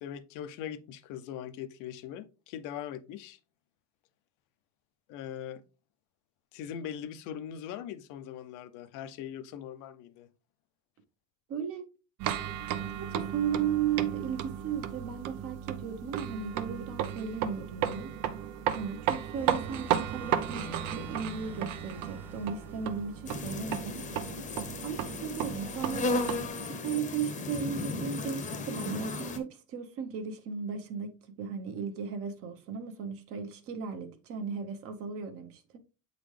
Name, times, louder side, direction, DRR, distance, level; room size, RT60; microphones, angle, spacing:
voice 1, 0.0-3.4 5.1-5.6 6.5-10.3, left 9 dB, 75° left, 0.6 m, -41 dB
voice 2, 11.5-11.9 13.0-18.1 18.7-24.1 24.8-26.1 26.6-35.8, right 7 dB, 45° right, 0.9 m, -36 dB
sound 1, 12.2-26.5, right 10 dB, 85° right, 0.7 m, -34 dB
sound 2, 19.3-23.8, left 1 dB, 5° right, 0.4 m, -47 dB
sound 3, 23.3-29.4, left 2 dB, 25° left, 0.8 m, -35 dB
8.0 x 4.0 x 3.2 m
cardioid pair, 165°, 31 cm